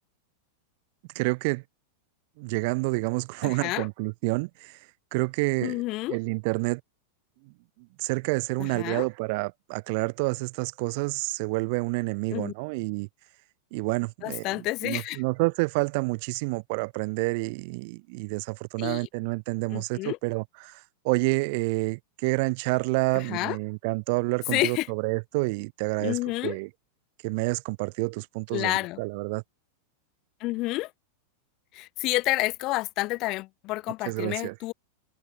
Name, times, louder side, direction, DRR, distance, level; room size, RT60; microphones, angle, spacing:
voice 1, 1.1-1.6 2.4-4.8 5.1-5.8 6.1-6.8 7.8-13.1 13.7-26.7 27.2-28.7 29.0-29.4 34.0-34.5, right 28 dB, 45° right, 1.4 m, -28 dB
voice 2, 3.4-3.9 5.6-6.2 8.6-9.1 12.3-12.5 14.2-15.2 18.8-19.1 19.7-20.2 23.1-23.6 24.5-24.9 26.0-26.6 28.5-29.0 30.4-30.9 31.7-34.7, left 20 dB, 40° left, 1.3 m, -29 dB
figure-of-eight pair, 90°, 0 cm